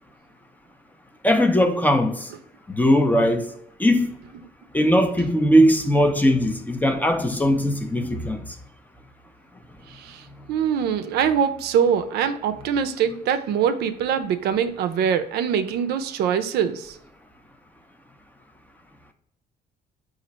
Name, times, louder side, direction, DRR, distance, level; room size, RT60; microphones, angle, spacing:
voice 1, 1.2-2.3 2.7-3.5 3.8-4.1 4.7-8.4, equal, 10° left, 0.5 m, -19 dB
voice 2, 9.9-17.0, right 8 dB, 70° right, 0.4 m, -23 dB
4.3 x 2.4 x 3.9 m
cardioid pair, 110°, 17 cm